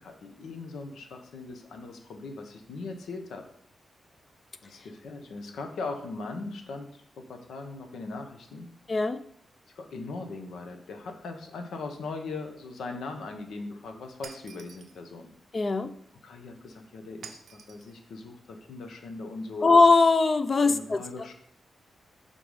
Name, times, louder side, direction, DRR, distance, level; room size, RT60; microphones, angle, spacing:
voice 1, 0.0-3.4 4.6-8.7 9.8-15.3 16.2-19.7 20.6-21.3, left 3 dB, 90° left, 5 dB, 0.8 m, -39 dB
voice 2, 8.9-9.2 15.5-15.9 19.6-21.0, left 3 dB, 40° left, 12 dB, 0.4 m, -20 dB
Shatter, 14.2-15.0 17.2-18.0, right 6 dB, 75° right, 0.5 m, -47 dB
5.4 x 3.8 x 4.8 m, 0.67 s
cardioid pair, 80°, 0 cm